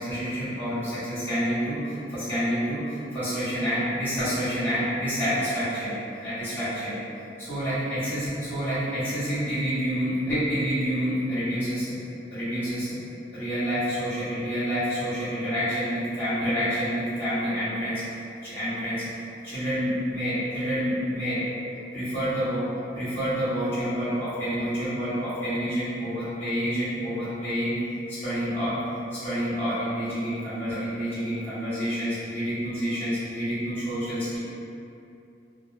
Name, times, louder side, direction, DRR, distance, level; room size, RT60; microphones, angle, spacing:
voice 1, 0.0-5.9 6.2-6.9 7.4-11.9 12.3-12.9 13.3-18.0 18.4-19.0 19.4-21.4 21.9-22.6 22.9-27.8 28.1-28.8 29.1-34.4, equal, 10° left, -15 dB, 0.9 m, -28 dB
2.3 x 2.2 x 3.1 m, 2.6 s
head